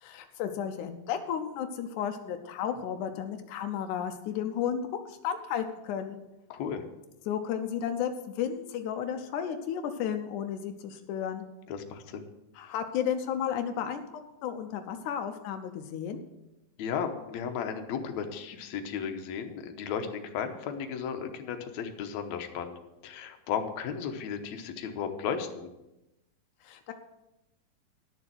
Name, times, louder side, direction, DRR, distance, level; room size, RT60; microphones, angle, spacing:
voice 1, 0.0-4.8 5.1-6.2 7.3-11.5 12.6-14.0 14.4-16.2 26.6-26.9, left 8 dB, 85° left, 6 dB, 2.2 m, -33 dB
voice 2, 6.5-6.8 11.7-12.3 16.8-22.8 23.0-25.7, left 7 dB, 70° left, 5 dB, 2.2 m, -35 dB
11.5 x 6.8 x 6.1 m, 0.94 s
omnidirectional pair, 3.5 m